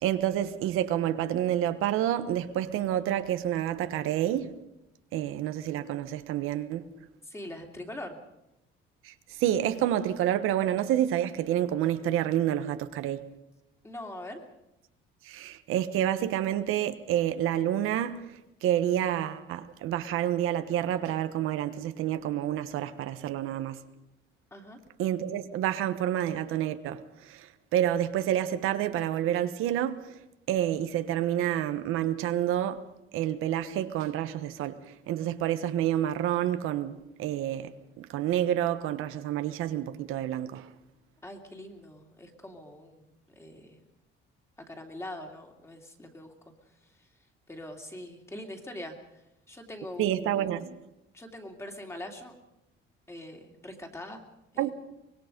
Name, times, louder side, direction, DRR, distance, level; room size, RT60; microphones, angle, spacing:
voice 1, 0.0-4.5 5.1-6.9 9.0-9.1 9.4-13.3 15.2-18.2 18.6-23.8 25.0-30.1 30.5-32.8 33.1-34.8 35.1-40.7 50.0-50.8 54.6-54.7, right 11 dB, 80° right, 1.2 m, -28 dB
voice 2, 7.2-8.2 13.8-14.4 24.5-24.8 41.2-43.1 43.4-43.8 44.6-46.3 47.5-48.9 49.5-50.6 51.1-52.3 53.1-54.2 54.5-54.7, left 1 dB, 15° left, 2.8 m, -42 dB
24.5 x 21.5 x 5.3 m
cardioid pair, 155°, 21 cm